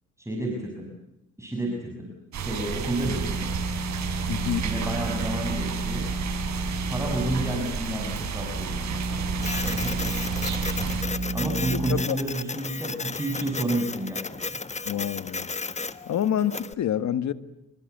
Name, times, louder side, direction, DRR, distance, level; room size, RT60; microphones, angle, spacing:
voice 1, 0.2-0.9 1.4-2.1 2.4-3.5 4.4-6.1 6.9-8.9 9.5-10.1 11.3-14.2 14.5-14.6, right 1 dB, 10° right, 1 dB, 6.2 m, -30 dB
sound 1, 2.3-11.0, right 6 dB, 65° right, 6.0 m, -32 dB
sound 2, 3.0-7.9 8.5-12.0, right 2 dB, 30° right, 6.2 m, -32 dB
voice 2, 4.3-4.6 11.7-12.2 14.9-15.5 16.1-17.3, left 10 dB, 65° left, 12 dB, 1.8 m, -27 dB
Printer, 9.4-16.7, left 4 dB, 20° left, 1.4 m, -34 dB
27.5 x 24.0 x 8.1 m, 0.92 s
cardioid pair, 90°, 30 cm